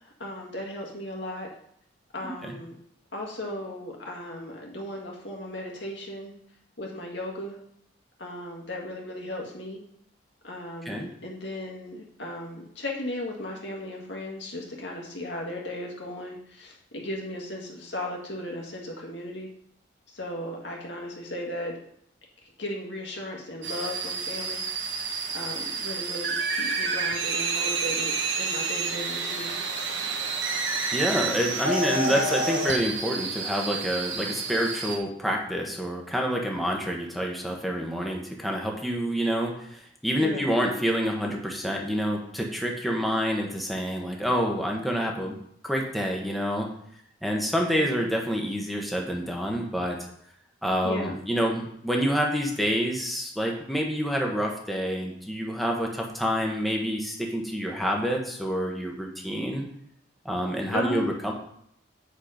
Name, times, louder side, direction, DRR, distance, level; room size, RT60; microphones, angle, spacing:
voice 1, 0.0-1.5 2.1-2.8 3.1-6.3 6.8-7.6 8.2-9.8 10.4-19.5 20.1-21.7 22.4-24.6 25.3-29.6 32.1-32.2 40.2-40.5 50.8-51.2 60.7-61.1, left 1 dB, 70° left, -1 dB, 2.0 m, -36 dB
sound 1, 23.6-35.0, right 4 dB, 75° right, 1.2 m, -29 dB
voice 2, 30.9-45.4 45.6-46.7 47.2-50.0 50.6-59.7 60.2-61.3, equal, ahead, 0 dB, 1.2 m, -27 dB
8.5 x 4.9 x 5.1 m, 0.70 s
head